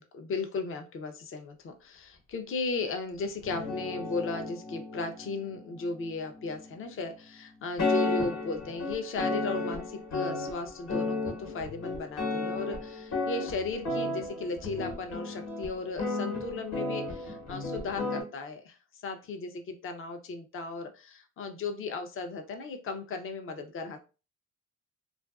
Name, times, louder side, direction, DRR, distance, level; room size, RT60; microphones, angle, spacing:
voice 1, 0.1-18.8 19.0-24.0, left 3 dB, 45° left, 6 dB, 0.5 m, -36 dB
sound 1, 3.4-7.0 7.8-18.2, left 2 dB, 60° left, 1.1 m, -34 dB
2.4 x 2.2 x 2.3 m, 0.33 s
cardioid pair, 90°, 30 cm